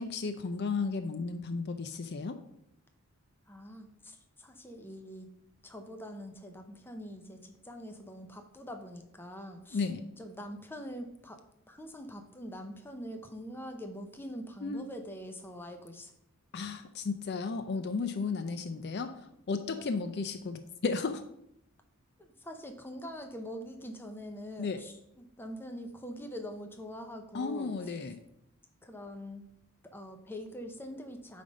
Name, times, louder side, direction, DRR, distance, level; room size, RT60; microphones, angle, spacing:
voice 1, 0.0-2.4 9.7-10.0 14.6-14.8 16.5-19.1 19.5-21.2 24.6-24.8 27.3-28.2, left 4 dB, 50° left, 9 dB, 0.4 m, -34 dB
voice 2, 3.5-5.3 5.6-9.9 10.2-11.4 11.7-16.1 22.2-28.1 28.8-29.4 29.8-31.4, equal, 10° left, 5 dB, 0.7 m, -44 dB
9.2 x 3.4 x 5.2 m, 0.77 s
head